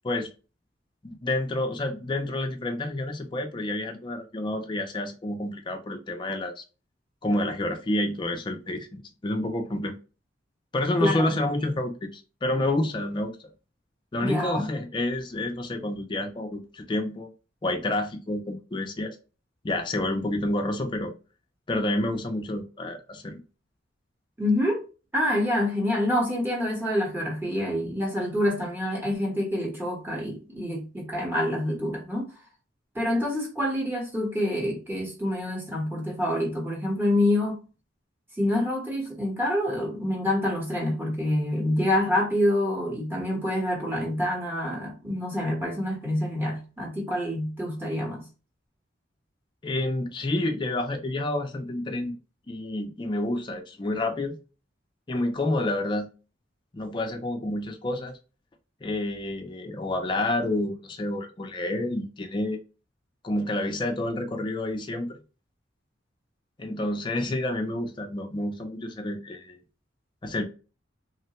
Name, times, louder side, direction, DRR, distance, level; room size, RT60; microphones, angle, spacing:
voice 1, 1.0-6.6 7.2-9.9 10.7-13.3 14.1-17.3 17.6-19.2 19.6-21.1 21.7-23.4 49.6-52.1 52.5-54.4 55.1-56.1 56.7-58.2 58.8-62.6 63.2-65.2 66.6-69.6 70.2-70.4, left 1 dB, 25° left, 0.4 m, -29 dB
voice 2, 11.0-11.3 14.2-14.7 24.4-24.8 25.1-32.3 32.9-37.6 38.4-48.2, left 1 dB, 10° right, 0.9 m, -27 dB
3.1 x 2.1 x 2.9 m
head